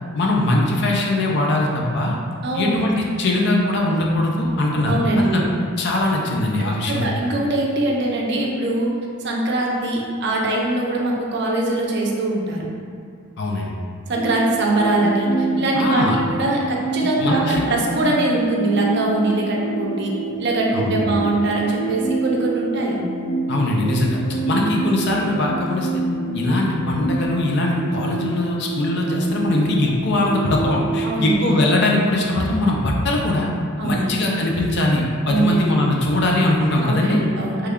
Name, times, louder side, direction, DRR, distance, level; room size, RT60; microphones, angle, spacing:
voice 1, 0.1-2.2 2.5-5.4 5.8-7.1 13.4-13.7 15.7-16.2 17.2-17.6 20.7-21.0 23.5-24.2 24.5-26.0 26.3-33.5 33.8-37.2, left 1 dB, 50° left, -1 dB, 0.5 m, -21 dB
voice 2, 2.4-2.8 4.9-5.6 6.9-8.9 9.2-12.7 14.1-23.0 31.0-31.4 33.8-34.1 35.3-35.6 36.8-37.7, right 2 dB, 50° right, -2 dB, 0.5 m, -22 dB
sound 1, 14.1-31.1, right 3 dB, 65° left, 1.2 m, -27 dB
3.2 x 2.3 x 3.5 m, 2.3 s
head